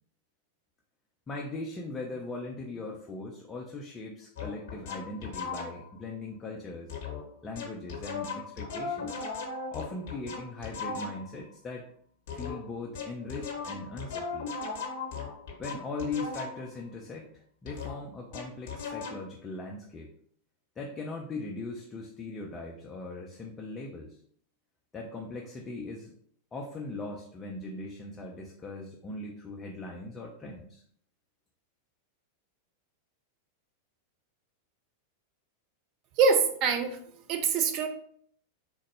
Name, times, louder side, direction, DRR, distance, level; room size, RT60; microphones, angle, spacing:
voice 1, 1.3-6.9 7.4-9.2 9.7-11.9 12.3-14.5 15.6-20.1 20.8-24.2 24.9-26.1 26.5-30.8, left 2 dB, 20° left, -1 dB, 0.5 m, -39 dB
sound 1, 4.4-6.0 6.9-7.2 7.5-11.4 12.3-16.8 17.7-19.3, left 4 dB, 50° left, 0.8 m, -37 dB
voice 2, 36.2-37.0 37.3-37.9, right 5 dB, 40° right, 5 dB, 0.5 m, -24 dB
3.7 x 2.1 x 3.1 m, 0.62 s
figure-of-eight pair, 90°, 0 cm